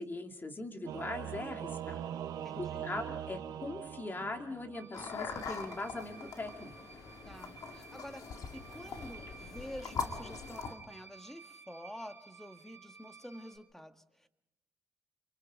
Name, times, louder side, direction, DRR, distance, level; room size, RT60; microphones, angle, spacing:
voice 1, 0.0-2.0 2.6-6.7, left 2 dB, 30° left, 3 dB, 2.7 m, -40 dB
Singing / Musical instrument, 0.9-4.9, right 10 dB, 80° right, 1.0 m, -41 dB
voice 2, 2.3-2.8 7.2-8.3 8.5-14.3, equal, 5° left, 7 dB, 1.7 m, -48 dB
sound 1, 4.7-13.6, right 5 dB, 35° right, 3.5 m, -54 dB
sound 2, 4.9-10.7, left 5 dB, 70° left, 2.1 m, -42 dB
29.5 x 23.5 x 3.8 m, 0.88 s
cardioid pair, 70°, 7 cm